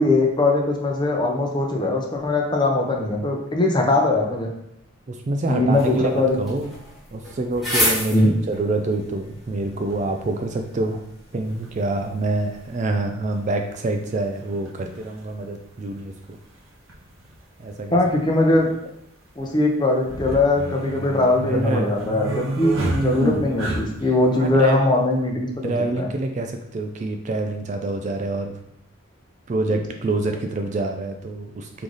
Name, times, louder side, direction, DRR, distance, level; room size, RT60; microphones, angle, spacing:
voice 1, 0.0-4.5 5.5-6.4 8.1-8.3 17.9-18.7 19.4-26.1 29.7-29.8, left 2 dB, 20° left, 1 dB, 0.6 m, -21 dB
voice 2, 5.1-6.7 7.1-11.0 11.3-16.4 17.6-18.0 21.4-21.9 22.3-22.4 24.4-24.9 25.6-28.5 29.5-31.8, right 2 dB, 35° right, 5 dB, 0.3 m, -26 dB
sound 1, 5.7-12.8, left 1 dB, ahead, 1.1 m, -31 dB
sound 2, 11.6-11.7 13.1-13.2 14.7-14.8 14.9-15.0 16.9-17.0 17.3-17.4 18.1-18.5 19.9-24.1, right 1 dB, 75° right, 1.0 m, -27 dB
3.8 x 3.2 x 3.8 m, 0.75 s
head